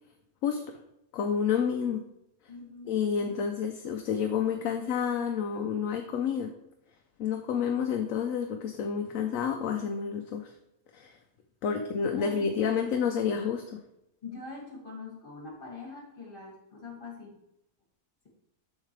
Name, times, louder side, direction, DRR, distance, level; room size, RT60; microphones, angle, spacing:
voice 1, 1.1-2.0 2.9-6.5 7.2-10.5 10.9-11.2 11.6-13.8, left 7 dB, 70° left, 4 dB, 1.0 m, -29 dB
voice 2, 2.5-3.0 3.2-3.3 11.6-12.8 14.2-17.3, left 3 dB, 35° left, -1 dB, 2.5 m, -44 dB
7.2 x 6.4 x 3.3 m, 0.84 s
omnidirectional pair, 1.5 m